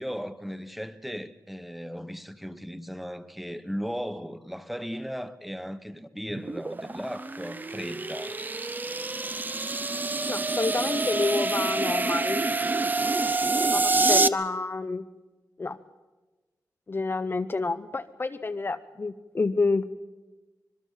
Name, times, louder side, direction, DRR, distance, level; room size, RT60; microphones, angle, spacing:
voice 1, 0.0-8.4, equal, ahead, 1.0 m, -36 dB
sound 1, 6.3-14.3, right 3 dB, 25° right, 0.6 m, -27 dB
voice 2, 10.3-12.4 13.6-15.1 15.6-15.8 16.9-19.8, left 3 dB, 35° left, 0.6 m, -29 dB
25.5 x 21.5 x 5.6 m
wide cardioid pair, 115°, 7 cm